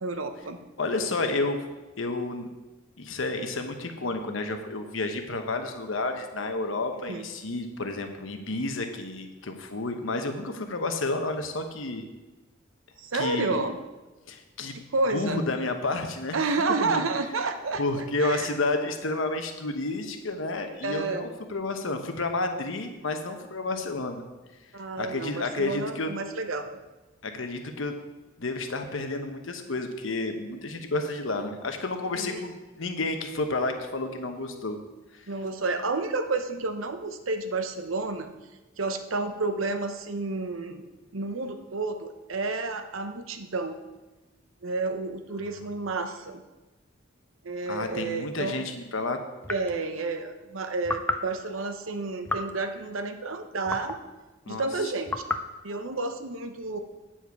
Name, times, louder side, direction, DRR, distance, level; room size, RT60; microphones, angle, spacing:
voice 1, 0.0-0.6 7.0-7.3 13.0-13.8 14.9-15.4 16.3-18.6 20.8-21.3 24.7-26.8 32.1-32.4 35.3-38.3 38.8-40.8 41.1-43.8 44.6-46.4 47.4-48.7 49.5-54.0 54.5-55.1 55.6-56.8, right 3 dB, 85° right, 7 dB, 0.8 m, -30 dB
voice 2, 0.8-1.6 2.0-2.5 3.0-12.1 13.1-13.6 14.3-14.7 15.1-16.4 16.8-17.0 17.8-24.2 25.0-26.1 27.2-28.0 28.4-34.8 35.1-35.2 45.4-45.6 47.7-49.2 54.5-54.7, left 2 dB, 75° left, 6 dB, 1.0 m, -30 dB
sound 1, 49.4-49.9 50.8-51.3 52.2-52.6 53.7-54.1 55.1-55.5, left 2 dB, 10° left, 0.4 m, -31 dB
8.7 x 7.4 x 4.7 m, 1.1 s
head